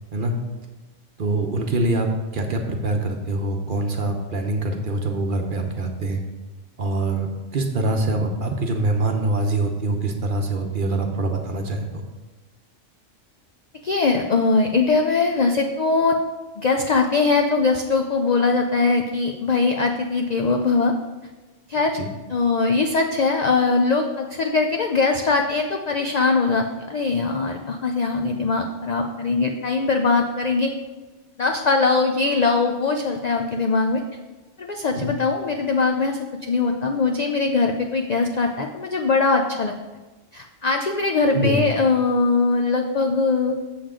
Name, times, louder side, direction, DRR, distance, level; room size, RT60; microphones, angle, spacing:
voice 1, 1.2-6.2 6.8-12.0 21.9-22.1 35.0-35.1 41.3-41.6, right 2 dB, 50° right, 3 dB, 0.9 m, -24 dB
voice 2, 13.8-16.2 16.6-20.9 21.7-22.0 22.3-30.7 31.4-34.0 34.6-39.7 40.3-43.6, left 4 dB, 60° left, 3 dB, 0.4 m, -21 dB
7.1 x 7.0 x 3.7 m, 1.2 s
omnidirectional pair, 1.3 m